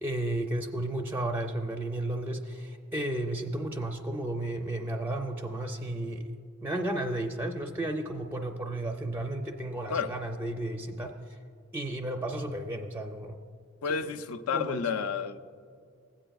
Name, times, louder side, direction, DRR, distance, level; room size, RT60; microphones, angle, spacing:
voice 1, 0.0-6.3 6.6-11.2 11.7-13.4 14.0-14.1 14.5-14.9, right 1 dB, 10° right, 3 dB, 0.4 m, -33 dB
voice 2, 13.8-15.4, left 6 dB, 75° left, 8 dB, 0.5 m, -30 dB
16.0 x 8.9 x 2.3 m, 2.2 s
head